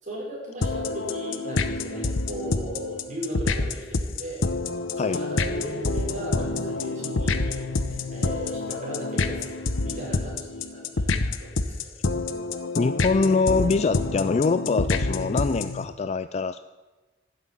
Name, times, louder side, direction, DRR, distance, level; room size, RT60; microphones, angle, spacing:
voice 1, 0.0-4.5 4.9-11.9, right 1 dB, 40° right, -4 dB, 6.1 m, -37 dB
sound 1, 0.6-15.8, left 3 dB, 80° left, 0.9 m, -27 dB
voice 2, 12.8-16.6, left 4 dB, 35° left, 12 dB, 0.3 m, -24 dB
12.0 x 8.3 x 9.7 m, 1.2 s
head